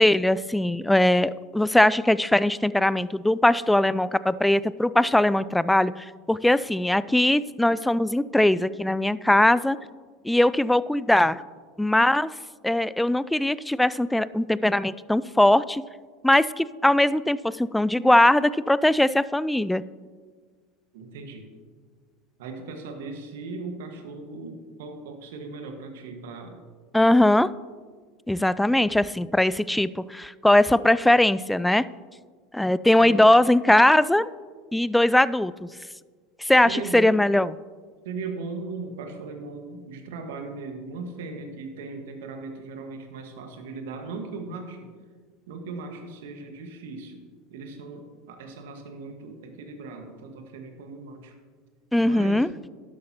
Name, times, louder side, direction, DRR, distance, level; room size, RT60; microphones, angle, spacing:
voice 1, 0.0-9.8 10.2-11.4 11.8-12.3 12.6-15.8 16.2-19.8 26.9-27.5 28.3-31.8 32.5-34.3 34.7-35.7 36.4-37.5 51.9-52.5, left 1 dB, 5° left, 17 dB, 0.3 m, -20 dB
voice 2, 20.9-21.5 22.4-26.6 33.0-33.2 36.5-37.2 38.0-44.9 45.5-47.2 47.5-51.3 52.0-52.5, right 4 dB, 70° right, 4 dB, 1.6 m, -38 dB
12.0 x 11.0 x 2.9 m, 1.5 s
hypercardioid pair, 80°, 0 cm